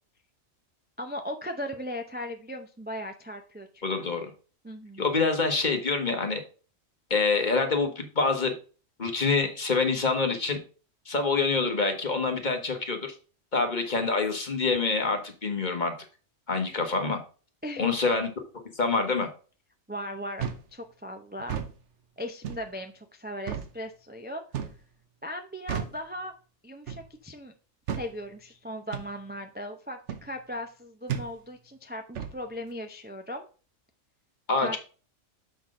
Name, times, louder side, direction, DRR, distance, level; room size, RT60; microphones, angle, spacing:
voice 1, 1.0-4.2 4.6-5.0 17.6-17.9 19.9-20.4 20.7-21.6 22.2-24.4 25.2-26.3 26.6-27.5 28.0-33.5 34.6-34.8, equal, 15° right, 5 dB, 0.4 m, -38 dB
voice 2, 3.8-4.3 5.0-6.4 7.1-8.5 9.0-10.6 11.1-13.1 13.5-15.9 16.5-17.2 17.8-18.3 18.7-19.3 34.5-34.8, left 4 dB, 40° left, 5 dB, 1.3 m, -26 dB
sound 1, 20.4-20.7 21.4-21.7 22.4-22.7 23.5-23.7 24.5-24.8 25.7-26.0 26.9-27.1 27.9-28.1 28.9-29.1 30.1-30.3 31.1-31.3 32.2-32.4, right 8 dB, 65° right, 1.1 m, -33 dB
6.7 x 5.8 x 3.7 m, 0.37 s
omnidirectional pair, 1.3 m